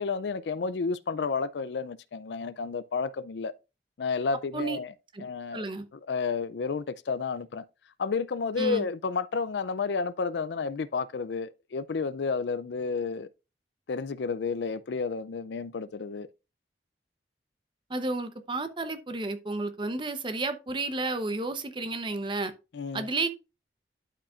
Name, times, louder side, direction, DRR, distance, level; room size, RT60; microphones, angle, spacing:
voice 1, 0.0-3.5 4.0-4.9 5.2-5.7 5.9-7.6 8.0-13.3 13.9-16.3 22.7-23.1, left 5 dB, 75° left, 0.4 m, -31 dB
voice 2, 5.5-5.9 8.6-8.8 17.9-22.5 22.9-23.3, right 2 dB, 30° right, 0.8 m, -31 dB
11.5 x 5.2 x 2.5 m
head